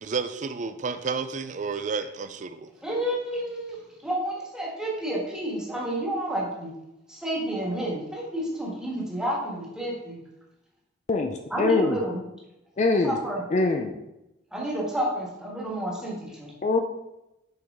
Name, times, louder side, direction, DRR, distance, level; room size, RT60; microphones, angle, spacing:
voice 1, 0.0-2.7, right 5 dB, 45° right, 10 dB, 0.4 m, -31 dB
voice 2, 2.8-6.7 7.1-10.2 11.5-12.2 13.0-13.4 14.5-16.5, right 1 dB, 5° right, -4 dB, 1.5 m, -30 dB
voice 3, 11.1-12.0 12.8-13.2 13.5-14.0 16.6-16.8, left 3 dB, 40° left, 5 dB, 0.4 m, -23 dB
6.3 x 4.8 x 3.5 m, 0.91 s
head